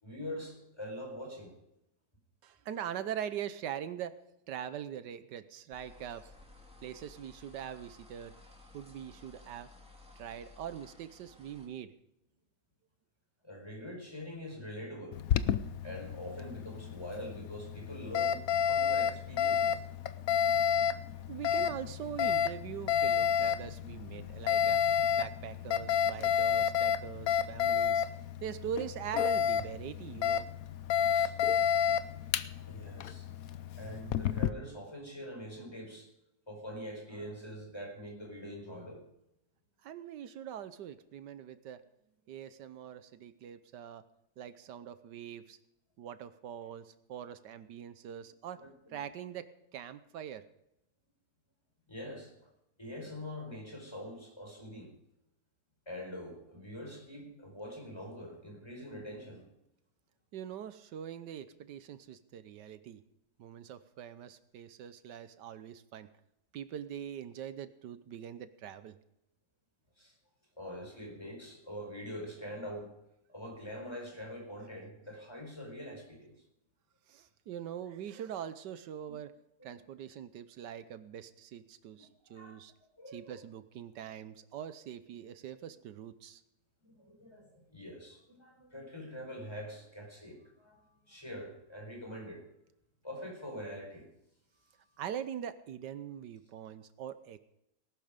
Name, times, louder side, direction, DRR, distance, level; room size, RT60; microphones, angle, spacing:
voice 1, 0.0-1.5 13.4-15.2 15.8-18.4 18.7-19.8 31.1-31.3 32.6-36.1 36.5-39.0 48.5-49.0 51.9-52.5 52.8-54.9 55.9-59.5 70.0-70.1 70.6-72.9 73.3-76.3 79.6-79.7 82.0-82.6 83.0-83.4 86.8-92.4 93.0-94.1, equal, 15° left, 1 dB, 4.7 m, -44 dB
voice 2, 2.4-4.1 4.5-6.3 6.8-8.3 8.7-9.7 10.2-11.9 21.3-24.8 25.2-28.0 28.4-30.5 39.8-41.8 42.3-44.0 44.4-45.6 46.0-48.6 48.9-50.4 60.3-63.0 63.4-66.1 66.5-69.0 77.1-79.3 79.6-82.7 83.1-86.4 95.0-97.4, right 9 dB, 85° right, 13 dB, 1.5 m, -42 dB
sound 1, 5.7-11.7, left 2 dB, 5° right, 2.3 m, -56 dB
Alarm, 15.1-34.5, left 8 dB, 65° left, 1.0 m, -31 dB
19.0 x 11.5 x 5.1 m, 0.82 s
omnidirectional pair, 1.8 m